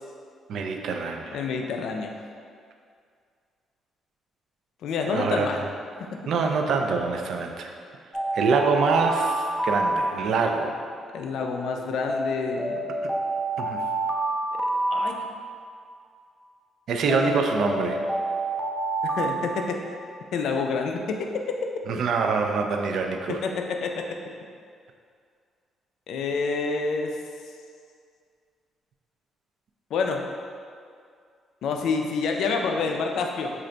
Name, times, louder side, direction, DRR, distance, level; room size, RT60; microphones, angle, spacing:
voice 1, 0.5-1.5 5.1-5.7 6.3-7.7 8.3-10.8 13.0-13.1 13.6-13.9 16.9-18.0 21.9-23.4, right 4 dB, 70° right, 4 dB, 0.3 m, -25 dB
voice 2, 1.3-2.2 4.8-5.6 6.1-6.2 11.1-12.8 14.9-15.2 17.1-17.3 19.0-19.8 20.3-21.7 23.3-24.2 26.1-27.1 29.9-30.2 31.6-33.5, left 4 dB, 75° left, 3 dB, 0.3 m, -28 dB
Alarm, 8.1-10.7 12.1-15.7 17.1-20.3, right 2 dB, ahead, 0.4 m, -28 dB
3.2 x 2.5 x 3.8 m, 2.2 s
cardioid pair, 90°, 0 cm